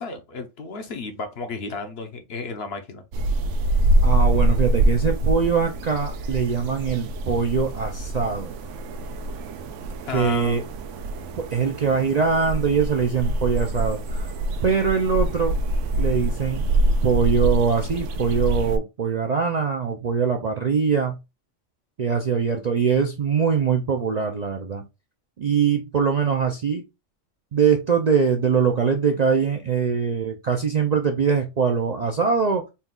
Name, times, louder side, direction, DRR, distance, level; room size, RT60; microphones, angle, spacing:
voice 1, 0.0-3.0 10.1-10.6, left 4 dB, 60° left, 0.9 m, -33 dB
sound 1, 3.1-18.8, right 1 dB, 80° right, 0.9 m, -25 dB
voice 2, 4.0-8.5 10.1-10.6 11.4-14.3 14.6-15.6 16.0-16.7 17.0-21.2 22.0-24.8 25.4-26.8 27.5-32.6, right 6 dB, 50° right, 0.5 m, -22 dB
4.2 x 2.3 x 3.6 m
omnidirectional pair, 1.3 m